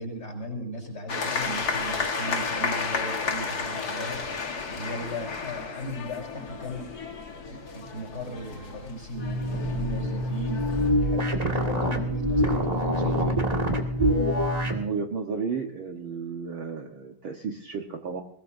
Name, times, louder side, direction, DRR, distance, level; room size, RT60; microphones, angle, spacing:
voice 1, 0.0-6.9 7.4-13.4, equal, 15° left, 2 dB, 6.4 m, -37 dB
sound 1, 1.1-10.9, left 4 dB, 60° left, 0.9 m, -32 dB
sound 2, 9.1-14.8, equal, 40° right, 0.5 m, -25 dB
voice 2, 14.3-18.2, right 5 dB, 75° right, 2 dB, 1.1 m, -33 dB
21.5 x 21.0 x 2.7 m, 0.63 s
omnidirectional pair, 4.4 m